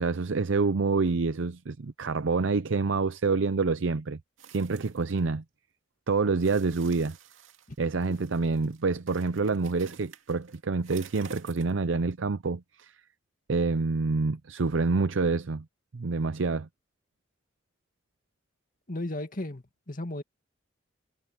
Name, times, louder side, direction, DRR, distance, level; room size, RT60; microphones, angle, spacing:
voice 1, 0.0-4.2 4.5-5.4 6.1-7.2 7.8-12.9 13.5-15.6 15.9-16.7, right 4 dB, 70° right, 0.6 m, -27 dB
sound 1, 4.4-5.2 6.4-11.8 12.1-12.2, right 5 dB, 85° right, 2.3 m, -50 dB
voice 2, 18.9-20.2, left 1 dB, 45° left, 2.2 m, -35 dB
head